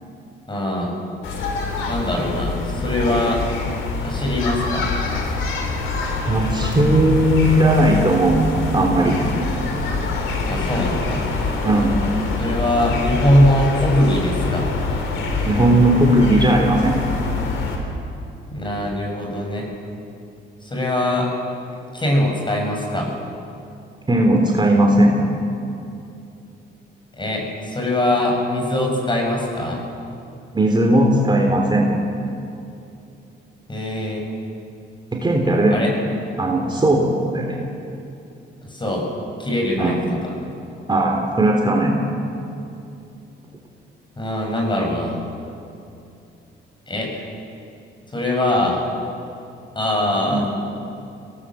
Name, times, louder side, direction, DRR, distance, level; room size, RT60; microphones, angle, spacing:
voice 1, 0.5-0.9 1.9-3.4 4.0-4.9 10.4-11.2 12.4-14.7 18.5-19.7 20.6-21.3 21.9-23.1 27.1-29.8 33.7-34.2 35.7-35.9 38.6-39.1 39.4-40.4 44.2-45.2 46.9-47.2 48.1-48.8 49.7-50.4, left 1 dB, 25° left, 0 dB, 6.7 m, -21 dB
sound 1, 1.2-17.8, left 3 dB, 85° left, 3.6 m, -25 dB
voice 2, 6.3-8.4 8.7-9.2 11.6-12.0 15.4-17.0 24.1-25.1 30.5-31.9 35.2-35.9 36.4-37.6 39.8-40.0 40.9-42.0 50.3-50.4, right 1 dB, 25° right, 0 dB, 3.2 m, -17 dB
23.0 x 18.5 x 7.6 m, 2.6 s
cardioid pair, 90°, 20 cm